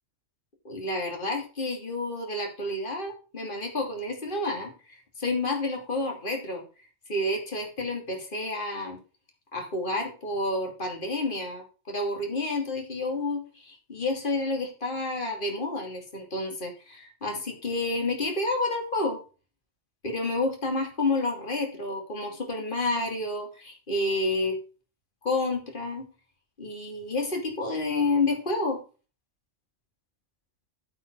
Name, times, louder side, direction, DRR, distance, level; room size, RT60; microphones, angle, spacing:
voice 1, 0.6-6.6 7.1-9.0 9.5-19.2 20.0-24.6 25.2-26.0 26.6-28.8, left 2 dB, 40° left, 1 dB, 3.0 m, -29 dB
14.5 x 5.0 x 4.8 m, 0.35 s
omnidirectional pair, 1.3 m